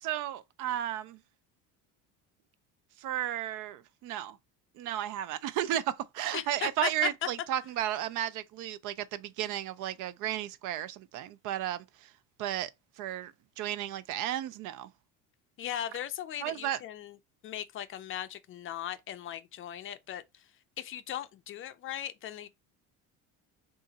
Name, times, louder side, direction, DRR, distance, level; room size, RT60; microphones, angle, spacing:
voice 1, 0.0-1.2 3.0-4.4 4.8-12.1 12.4-12.7 13.0-14.9 16.4-16.8, right 12 dB, 65° right, 0.5 m, -33 dB
voice 2, 6.3-7.1 15.6-17.2 17.4-20.2 20.8-22.5, left 11 dB, 40° left, 0.4 m, -38 dB
3.7 x 2.5 x 3.9 m
cardioid pair, 140°, 34 cm